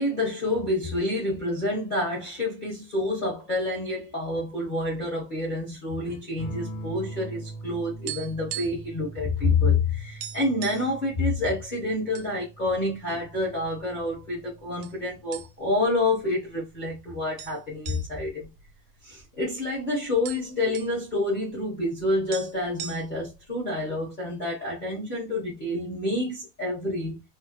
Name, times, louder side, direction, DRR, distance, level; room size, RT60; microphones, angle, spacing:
voice 1, 0.0-18.5 19.0-27.2, left 2 dB, 60° left, 0.5 m, -28 dB
sound 1, 6.4-15.5 16.9-17.5, right 2 dB, 75° left, 1.1 m, -42 dB
sound 2, 8.1-9.0 9.2-9.4 9.8-9.9 10.2-11.0 11.6-12.3 12.7-12.8 13.5-14.1 14.8-15.0 15.3-15.9 16.2-16.3 17.4-19.4 19.7-19.8 20.0-21.0 22.0-22.1 22.3-23.4, right 11 dB, 90° right, 1.5 m, -39 dB
3.6 x 2.2 x 2.8 m
omnidirectional pair, 2.4 m